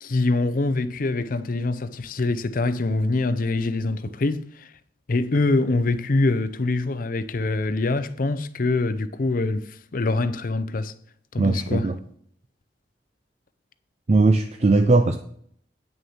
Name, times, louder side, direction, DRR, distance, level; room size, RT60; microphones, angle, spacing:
voice 1, 0.0-4.7 5.1-10.9 11.3-11.9, left 2 dB, 50° left, 0.5 m, -24 dB
voice 2, 11.4-12.0 14.1-15.2, right 3 dB, 40° right, 0.5 m, -19 dB
9.0 x 6.4 x 4.3 m
head